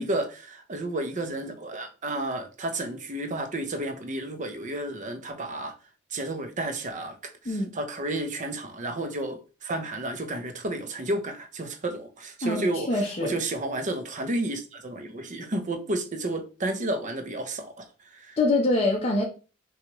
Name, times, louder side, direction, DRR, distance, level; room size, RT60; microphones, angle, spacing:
voice 1, 0.0-5.8 6.1-18.4, right 1 dB, 35° right, 0.6 m, -32 dB
voice 2, 12.4-13.3 18.4-19.2, left 2 dB, 30° left, 0.7 m, -24 dB
6.0 x 2.4 x 3.0 m
head